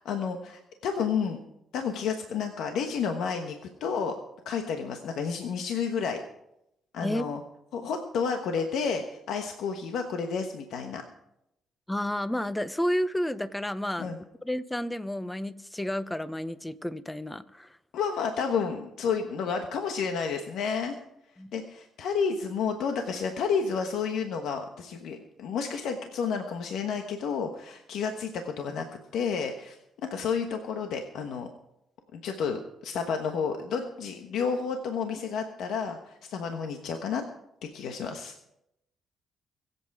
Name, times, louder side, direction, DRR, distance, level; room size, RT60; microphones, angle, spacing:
voice 1, 0.0-1.4 1.7-4.1 4.4-6.2 6.9-7.4 7.7-11.0 14.0-14.2 17.9-21.0 21.5-28.8 29.1-31.5 32.1-37.2 37.6-38.3, left 6 dB, 80° left, 5 dB, 1.2 m, -31 dB
voice 2, 11.9-14.1 14.4-17.7 21.4-21.5, left 1 dB, 10° left, 15 dB, 0.7 m, -31 dB
23.5 x 8.2 x 4.8 m, 0.83 s
cardioid pair, 90°, 0 cm